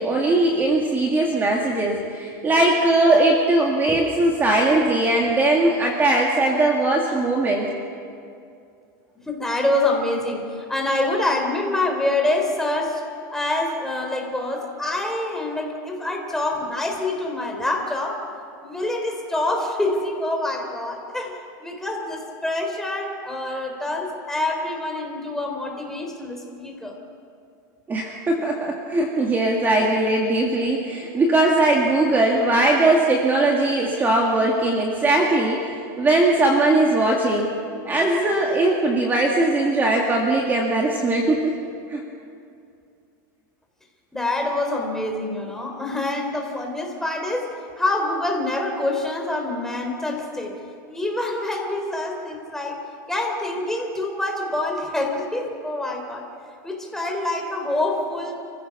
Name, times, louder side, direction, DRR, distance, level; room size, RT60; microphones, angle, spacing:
voice 1, 0.0-7.7 27.9-37.5 37.8-41.5 41.9-42.0, right 2 dB, 20° right, 0 dB, 2.0 m, -20 dB
voice 2, 9.3-13.0 13.3-18.2 18.6-26.9 44.1-50.6 50.9-52.8 53.1-56.3 56.6-58.4, left 2 dB, 5° left, 1 dB, 3.4 m, -26 dB
29.0 x 15.5 x 5.9 m, 2.4 s
supercardioid pair, 140°, 11 cm